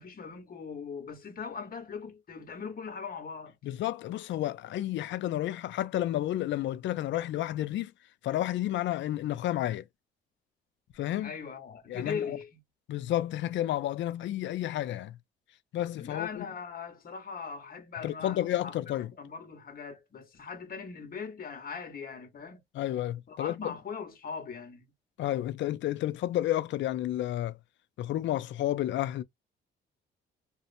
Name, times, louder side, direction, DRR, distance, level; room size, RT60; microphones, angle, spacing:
voice 1, 0.0-3.5 11.2-12.6 16.0-22.6 23.3-24.9, left 6 dB, 45° left, 1.2 m, -40 dB
voice 2, 3.6-7.9 8.2-9.9 11.0-11.3 11.9-12.4 12.9-15.2 15.7-16.5 18.0-19.1 22.7-23.7 25.2-27.6 28.0-29.2, left 13 dB, 70° left, 0.4 m, -31 dB
2.7 x 2.0 x 2.5 m
cardioid pair, 90°, 20 cm